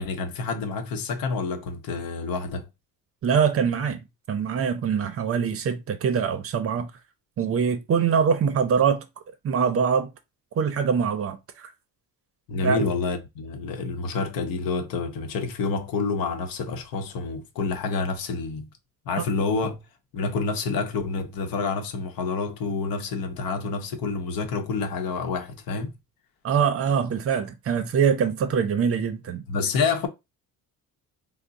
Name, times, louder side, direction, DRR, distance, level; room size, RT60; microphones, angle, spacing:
voice 1, 0.0-2.7 12.5-18.7 19.1-19.8 20.1-26.0 29.5-30.1, left 4 dB, 85° left, 0.8 m, -28 dB
voice 2, 3.2-4.0 4.3-6.9 7.4-9.0 9.4-10.1 10.6-11.7 12.6-12.8 26.4-29.4, right 7 dB, 40° right, 0.5 m, -23 dB
3.5 x 2.0 x 3.9 m
cardioid pair, 140°, 34 cm